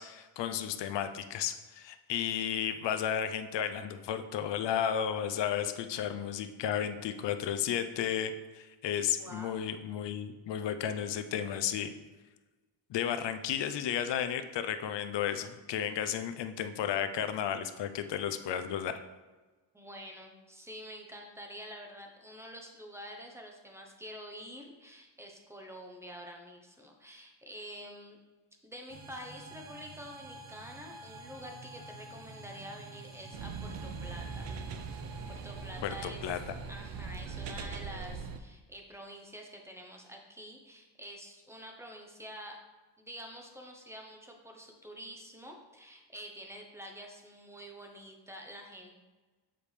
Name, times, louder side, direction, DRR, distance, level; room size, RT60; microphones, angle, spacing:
voice 1, 0.0-11.9 12.9-19.0 35.8-36.4, left 9 dB, 65° left, 9 dB, 0.6 m, -33 dB
voice 2, 9.2-9.7 19.7-28.2 28.6-34.5 35.3-36.2 36.7-42.6 43.0-48.9, equal, 5° right, 2 dB, 0.8 m, -47 dB
sound 1, 28.9-38.2, right 2 dB, 85° right, 1.0 m, -49 dB
sound 2, 33.3-38.4, right 5 dB, 65° right, 0.6 m, -41 dB
7.2 x 5.1 x 3.2 m, 1.3 s
cardioid pair, 150°, 48 cm